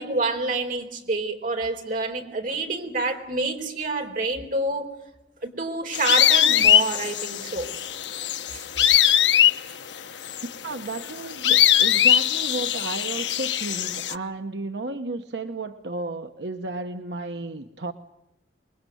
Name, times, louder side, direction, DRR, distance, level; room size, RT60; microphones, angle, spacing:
voice 1, 0.0-4.9 5.4-7.7 8.5-8.6, right 2 dB, 50° right, 3 dB, 4.2 m, -28 dB
sound 1, 5.9-14.1, left 10 dB, 85° left, 0.9 m, -21 dB
voice 2, 10.6-17.9, right 2 dB, 75° right, 5 dB, 1.1 m, -33 dB
26.0 x 21.5 x 9.3 m, 0.92 s
head